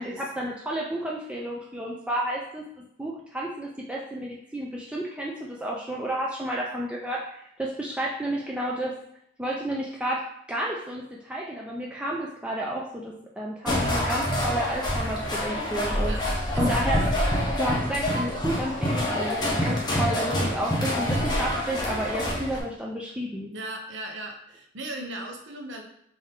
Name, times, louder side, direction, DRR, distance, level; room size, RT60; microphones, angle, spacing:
voice 1, 0.0-7.2 7.6-8.9 9.4-10.2 10.5-16.1 16.6-17.0 17.6-23.5, right 1 dB, 5° right, -3 dB, 0.3 m, -31 dB
sound 1, 13.6-22.6, left 1 dB, 20° left, 0.8 m, -26 dB
voice 2, 16.5-17.0 23.5-25.8, right 1 dB, 70° right, 3 dB, 0.7 m, -38 dB
3.6 x 2.6 x 3.6 m, 0.72 s
head